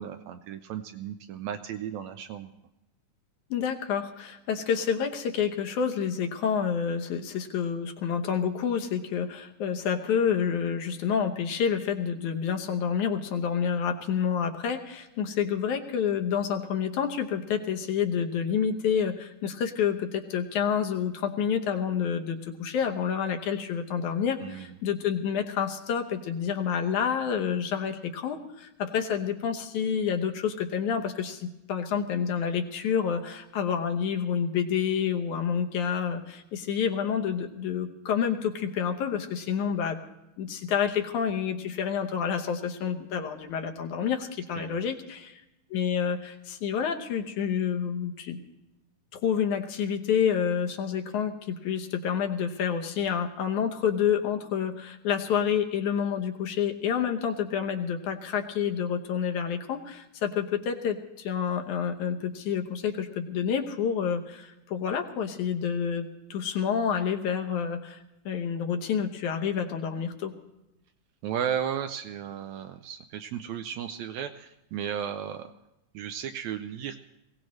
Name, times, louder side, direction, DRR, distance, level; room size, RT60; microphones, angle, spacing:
voice 1, 0.0-2.5 24.4-24.7 44.6-44.8 71.2-75.5 75.9-77.0, right 9 dB, 75° right, 8 dB, 1.7 m, -34 dB
voice 2, 3.5-40.0 40.4-45.4 45.7-48.4 49.1-68.0 68.3-70.3, left 7 dB, 75° left, 4 dB, 2.3 m, -28 dB
21.5 x 17.0 x 3.2 m, 0.91 s
omnidirectional pair, 3.6 m